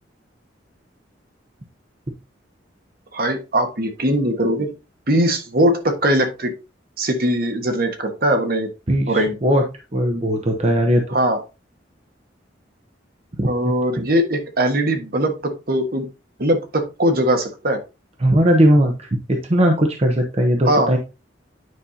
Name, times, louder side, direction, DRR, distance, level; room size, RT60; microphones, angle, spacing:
voice 1, 3.1-4.7 5.1-6.5 7.0-8.7 9.1-9.3 11.1-11.4 13.5-16.1 16.4-17.8 20.6-20.9, right 1 dB, 55° right, 5 dB, 1.4 m, -20 dB
voice 2, 8.9-9.6 9.9-11.0 13.4-14.1 18.2-21.0, equal, 35° right, 3 dB, 1.0 m, -18 dB
9.5 x 5.4 x 2.9 m, 0.28 s
head